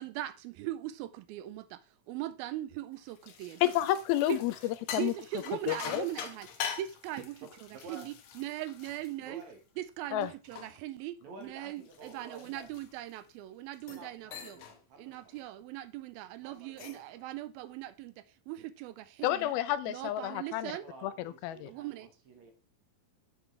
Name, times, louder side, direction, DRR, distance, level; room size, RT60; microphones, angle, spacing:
voice 1, 0.0-1.8 2.1-3.6 4.3-4.4 5.0-6.5 6.8-7.2 7.9-9.4 9.8-14.6 15.0-19.5 19.9-20.8 21.7-22.1, right 13 dB, 85° right, 2.4 m, -40 dB
sound 1, 3.0-9.8 10.2-13.2 13.7-14.1 14.3-14.8 15.1-15.4 16.5-17.1, left 8 dB, 65° left, 2.2 m, -44 dB
voice 2, 3.6-5.1 5.7-6.1 10.1-10.3 19.2-20.7 21.0-21.7, left 13 dB, 85° left, 2.5 m, -30 dB
voice 3, 7.7-8.1 9.2-9.6 11.2-12.7 13.9-15.3 16.4-17.2 20.8-22.5, right 3 dB, 55° right, 2.7 m, -51 dB
8.2 x 7.8 x 3.3 m
omnidirectional pair, 4.2 m